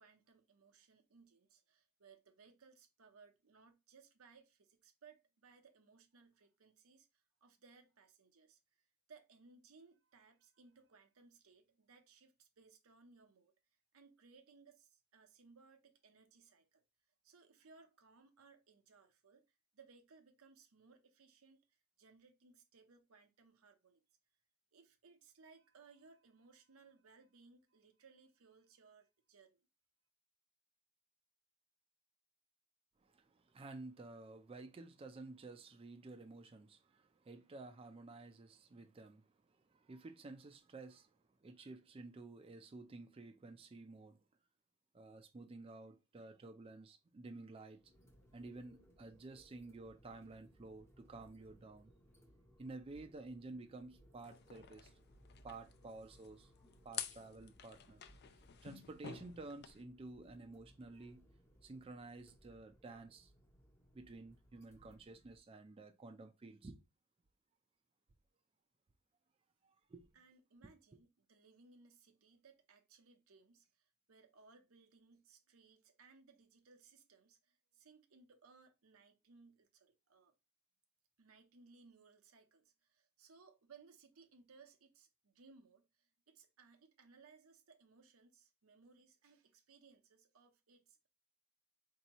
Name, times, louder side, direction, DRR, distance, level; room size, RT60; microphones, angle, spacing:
voice 1, 0.0-13.5 13.9-16.8 17.2-19.5 19.7-21.7 22.0-24.0 24.7-29.6 70.1-80.3 81.2-91.1, right 4 dB, 90° right, 0.7 m, -64 dB
voice 2, 33.0-44.2 44.9-47.8 48.3-51.9 52.6-54.9 55.4-56.5 56.8-58.0 58.6-61.2 61.6-63.3 63.9-66.8 69.6-70.1, right 2 dB, 25° right, 0.4 m, -52 dB
sound 1, 47.7-65.4, equal, 15° left, 0.7 m, -66 dB
sound 2, 54.2-59.8, left 8 dB, 50° left, 0.4 m, -51 dB
4.4 x 2.8 x 2.9 m
head